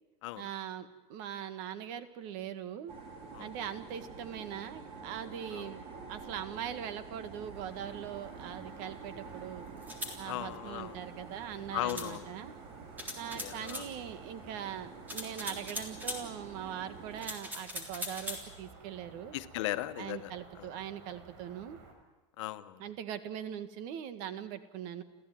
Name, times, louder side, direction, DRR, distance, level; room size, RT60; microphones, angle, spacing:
voice 1, 0.4-2.9 3.4-5.8 6.1-9.6 10.2-12.5 13.2-19.4 20.0-21.8 22.8-25.0, right 9 dB, 55° right, 11 dB, 1.8 m, -41 dB
sound 1, 2.9-17.3, right 4 dB, 40° right, 4.2 m, -48 dB
sound 2, 7.5-21.9, right 4 dB, 75° right, 6.2 m, -55 dB
sound 3, 9.8-10.2 11.9-12.1 13.0-13.9 15.1-16.2 17.2-18.4, equal, 10° right, 3.6 m, -40 dB
voice 2, 10.2-11.0 11.7-12.3 13.3-13.9 19.3-20.3 20.6-20.7 22.4-22.8, left 15 dB, 85° left, 11 dB, 1.2 m, -37 dB
29.5 x 15.0 x 9.3 m, 1.2 s
supercardioid pair, 155°, 15 cm